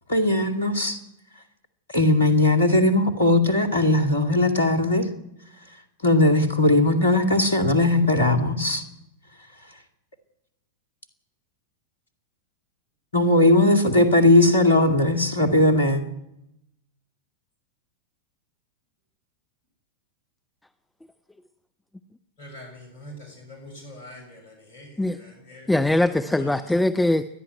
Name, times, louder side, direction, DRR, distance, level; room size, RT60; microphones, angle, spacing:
voice 1, 0.1-1.0 1.9-5.0 6.0-8.8 13.1-16.0, left 1 dB, 70° left, 2.3 m, -19 dB
voice 2, 22.4-24.9 25.5-25.7, left 1 dB, 55° left, 6.1 m, -43 dB
voice 3, 25.7-27.2, left 1 dB, 5° left, 0.7 m, -21 dB
28.5 x 10.5 x 9.2 m
figure-of-eight pair, 90°, 0 cm